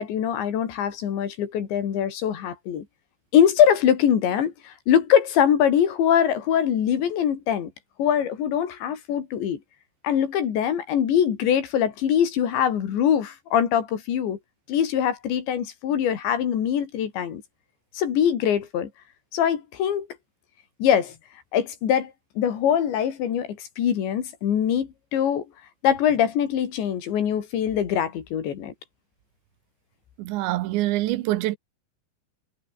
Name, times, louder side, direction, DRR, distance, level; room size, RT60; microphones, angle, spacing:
voice 1, 0.0-2.8 3.3-7.7 8.0-9.6 10.0-14.4 14.7-17.4 17.9-18.9 19.3-20.1 20.8-21.2 21.5-25.5 25.8-28.7, left 9 dB, 75° left, 5.2 m, -23 dB
voice 2, 30.2-31.6, right 16 dB, 85° right, 3.3 m, -25 dB
omnidirectional pair, 5.2 m